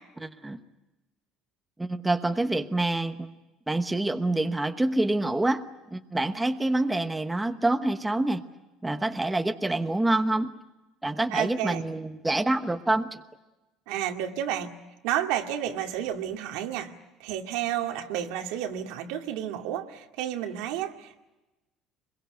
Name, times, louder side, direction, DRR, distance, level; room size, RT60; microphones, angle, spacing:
voice 1, 0.2-0.6 1.8-3.3 3.7-8.4 8.8-10.5 11.0-13.2, right 2 dB, 10° right, 7 dB, 1.1 m, -27 dB
voice 2, 11.3-11.8 13.9-14.7 15.0-16.9 17.2-21.2, right 11 dB, 85° right, 4 dB, 2.2 m, -31 dB
25.0 x 22.0 x 9.0 m, 1.0 s
cardioid pair, 130°, 0 cm